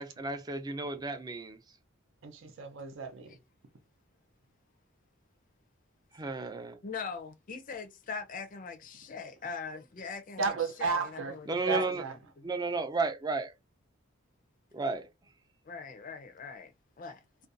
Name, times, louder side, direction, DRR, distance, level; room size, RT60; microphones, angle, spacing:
voice 1, 0.0-1.6 6.1-6.8 11.5-12.0 12.4-13.5 14.7-15.1, right 3 dB, 20° right, 0.4 m, -33 dB
voice 2, 2.2-3.3 10.4-11.3 11.7-12.1, right 5 dB, 65° right, 0.6 m, -33 dB
voice 3, 6.8-12.1 15.7-16.7 17.0-17.2, left 5 dB, 40° left, 0.5 m, -41 dB
2.5 x 2.2 x 2.5 m
head